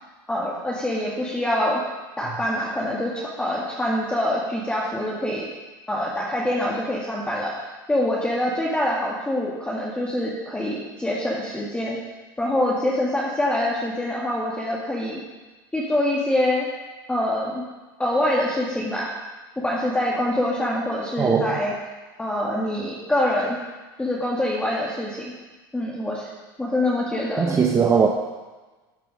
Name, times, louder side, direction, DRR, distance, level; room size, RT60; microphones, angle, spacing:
voice 1, 0.3-1.8 2.2-5.5 5.9-7.5 7.9-12.0 12.4-15.2 15.7-16.7 17.1-17.6 18.0-19.1 19.6-21.7 22.2-23.6 24.0-25.3 25.7-26.3 26.6-27.6, left 1 dB, 10° left, -5 dB, 1.7 m, -25 dB
voice 2, 21.2-21.6 27.4-28.1, right 6 dB, 25° right, 2 dB, 0.8 m, -19 dB
13.0 x 4.7 x 5.1 m, 1.2 s
supercardioid pair, 100°, 12 cm